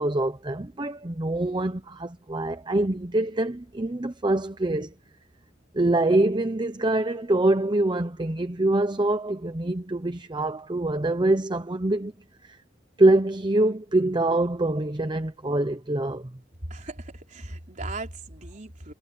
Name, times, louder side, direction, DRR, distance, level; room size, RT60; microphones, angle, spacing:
voice 1, 0.0-4.9 5.7-12.1 12.4-12.6 13.0-16.3, right 2 dB, 25° right, 0.8 m, -24 dB
voice 2, 16.7-18.9, right 2 dB, 40° right, 4.0 m, -38 dB
head